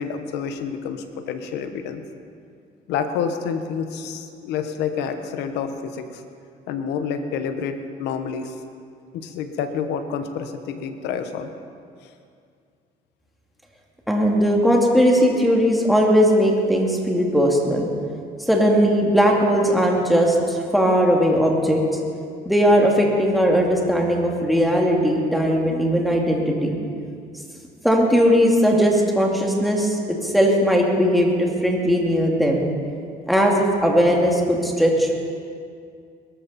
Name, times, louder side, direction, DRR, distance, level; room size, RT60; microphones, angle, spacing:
voice 1, 0.0-2.0 2.9-6.2 6.7-8.5 9.1-11.5, left 6 dB, 85° left, 8 dB, 1.2 m, -28 dB
voice 2, 14.1-17.9 18.5-21.8 22.5-26.8 27.8-32.7 33.3-35.1, equal, ahead, -1 dB, 2.5 m, -18 dB
21.0 x 13.0 x 4.3 m, 2.3 s
cardioid pair, 110°, 17 cm